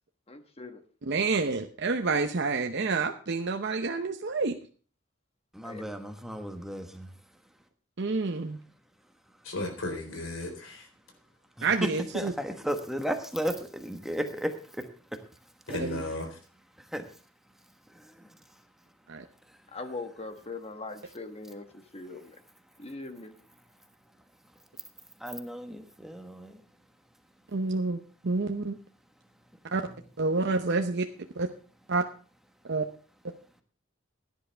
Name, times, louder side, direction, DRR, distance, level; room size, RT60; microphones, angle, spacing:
voice 1, 0.3-0.8 5.6-5.8 19.7-22.4 22.8-23.3, left 3 dB, 30° left, 7 dB, 1.3 m, -41 dB
voice 2, 1.0-4.6 8.0-8.6 11.6-12.3 15.8-16.0 19.1-19.2 27.5-28.0 28.2-28.8 29.7-29.9 30.2-31.1 31.4-31.5 31.9-32.0 32.6-32.9, right 3 dB, 60° right, 5 dB, 0.8 m, -28 dB
voice 3, 5.5-7.1 11.6-15.2 16.8-17.2 17.9-18.6 19.5-19.7 22.1-22.2 25.2-26.6, equal, ahead, 6 dB, 1.3 m, -35 dB
voice 4, 9.4-10.9 15.7-16.4, left 2 dB, 90° left, 4 dB, 4.0 m, -35 dB
16.5 x 10.5 x 3.4 m, 0.39 s
head